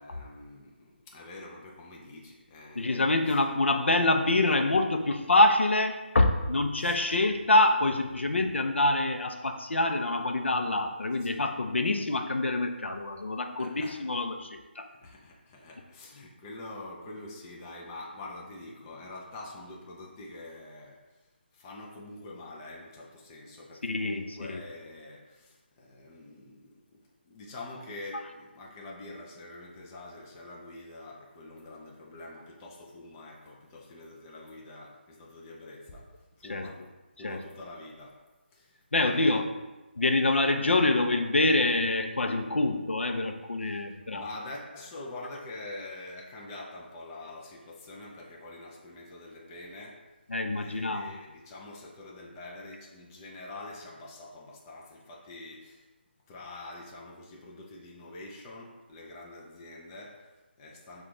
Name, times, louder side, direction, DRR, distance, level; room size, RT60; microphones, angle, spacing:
voice 1, 0.0-3.2 6.8-7.2 11.2-11.5 13.6-14.0 14.8-21.2 21.5-36.9 37.2-38.2 38.5-39.5 43.7-43.8 44.1-50.1 50.5-55.9 56.3-61.0, left 2 dB, 15° left, -2 dB, 0.5 m, -45 dB
voice 2, 2.7-14.9 23.9-24.6 36.5-36.7 37.2-37.4 38.9-39.5 40.0-44.2 50.3-51.1, left 2 dB, 85° left, 5 dB, 0.6 m, -26 dB
5.9 x 2.3 x 3.7 m, 1.1 s
figure-of-eight pair, 165°, 6 cm